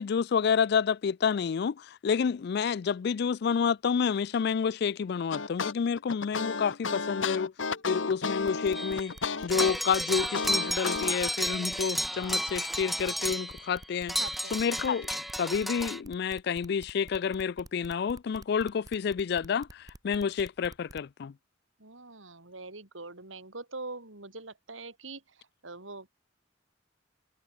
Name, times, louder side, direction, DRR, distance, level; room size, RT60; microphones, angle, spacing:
voice 1, 0.0-7.5 7.9-9.1 9.4-14.1 14.5-21.3, left 6 dB, 55° left, 0.4 m, -29 dB
sound 1, 5.3-11.1, left 4 dB, 80° left, 1.4 m, -32 dB
sound 2, 8.4-21.1, right 1 dB, 20° right, 1.4 m, -49 dB
sound 3, 8.7-9.1 9.5-13.7 14.1-16.0, equal, ahead, 1.4 m, -32 dB
voice 2, 14.2-14.6 21.8-25.2 25.6-26.1, right 3 dB, 90° right, 4.9 m, -43 dB
head